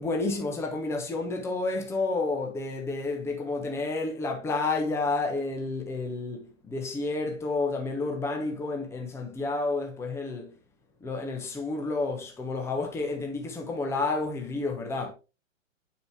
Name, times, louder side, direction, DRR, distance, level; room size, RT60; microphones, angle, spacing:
voice 1, 0.0-10.5 11.0-15.1, left 3 dB, 5° left, 1.1 m, -30 dB
9.4 x 4.8 x 3.3 m
figure-of-eight pair, 120°, 39 cm